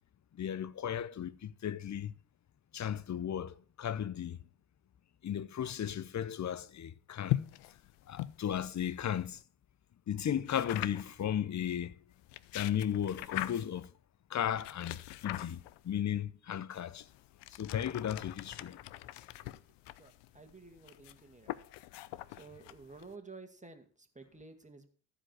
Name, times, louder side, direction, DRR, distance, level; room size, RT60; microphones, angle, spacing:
voice 1, 0.4-2.1 2.7-4.4 5.2-7.4 8.1-9.4 10.1-11.9 12.5-13.9 14.3-17.1 17.5-18.8, left 9 dB, 40° left, 0.8 m, -35 dB
sound 1, 7.2-9.4 10.5-11.2 12.1-13.8 14.6-15.9 16.7-23.1, left 15 dB, 85° left, 0.6 m, -42 dB
voice 2, 20.0-21.5 22.3-24.9, right 3 dB, 15° right, 2.2 m, -52 dB
13.5 x 5.1 x 6.2 m
supercardioid pair, 60°, 41 cm